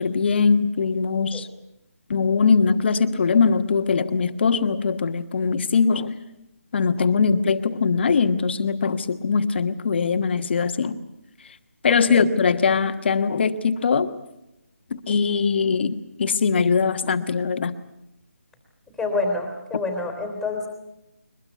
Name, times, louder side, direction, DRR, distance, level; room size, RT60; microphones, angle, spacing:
voice 1, 0.0-1.5 2.1-6.2 6.7-11.0 11.8-14.1 14.9-17.7, left 5 dB, 45° left, 10 dB, 1.3 m, -21 dB
voice 2, 19.0-20.7, left 3 dB, ahead, 3 dB, 3.2 m, -27 dB
22.5 x 21.5 x 8.3 m, 0.89 s
figure-of-eight pair, 165°, 8 cm